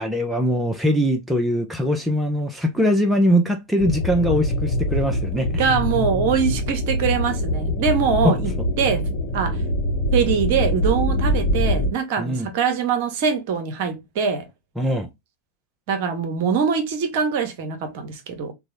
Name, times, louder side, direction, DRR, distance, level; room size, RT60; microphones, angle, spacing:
voice 1, 0.0-5.6 8.2-8.3 12.2-12.5 14.8-15.1, equal, 5° right, 0.5 m, -21 dB
sound 1, 3.8-11.9, equal, 40° left, 0.8 m, -23 dB
voice 2, 5.6-8.5 8.8-9.1 9.3-9.6 10.1-14.5 15.9-18.5, right 6 dB, 50° right, 0.7 m, -23 dB
3.4 x 2.0 x 2.9 m
figure-of-eight pair, 90°, 0 cm